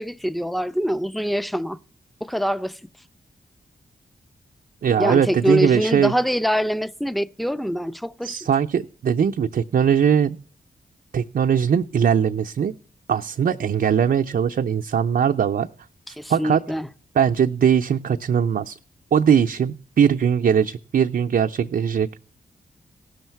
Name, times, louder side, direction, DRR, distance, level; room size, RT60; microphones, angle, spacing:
voice 1, 0.0-1.8 2.2-2.8 5.0-8.4 16.1-16.9, equal, ahead, 0.6 m, -24 dB
voice 2, 4.8-6.1 8.2-10.4 11.1-12.7 13.1-15.7 16.3-16.6 17.2-18.8 19.1-22.3, right 8 dB, 55° right, 0.5 m, -20 dB
16.5 x 6.4 x 4.5 m
supercardioid pair, 45°, 18 cm